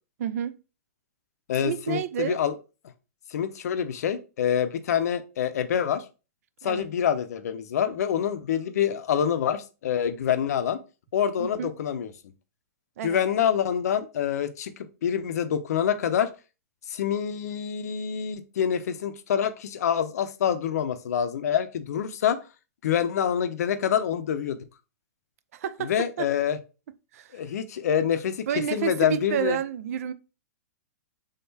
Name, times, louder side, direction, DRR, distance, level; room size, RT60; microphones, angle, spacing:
voice 1, 0.2-0.5 1.6-2.4 6.6-6.8 11.4-11.7 13.0-13.2 25.5-25.9 26.2-26.3 27.1-27.4 28.5-30.1, right 10 dB, 60° right, 0.4 m, -30 dB
voice 2, 1.5-2.5 3.3-6.0 6.6-10.8 11.1-12.1 13.0-16.3 16.9-22.4 22.8-24.6 25.8-26.6 27.3-29.6, left 8 dB, 70° left, 0.6 m, -26 dB
3.6 x 3.5 x 2.7 m
hypercardioid pair, 125°, 9 cm